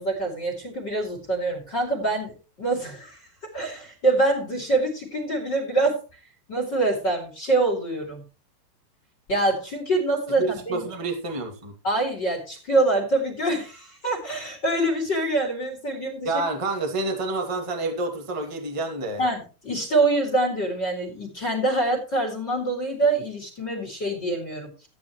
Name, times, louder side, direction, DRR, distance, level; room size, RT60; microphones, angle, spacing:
voice 1, 0.0-3.2 3.5-6.0 6.5-8.2 9.3-10.8 11.8-16.3 19.2-24.7, right 2 dB, 30° left, 3 dB, 3.0 m, -25 dB
voice 2, 10.4-11.7 16.2-19.2, right 2 dB, 20° right, 3 dB, 0.9 m, -28 dB
14.0 x 9.4 x 3.1 m, 0.33 s
omnidirectional pair, 4.8 m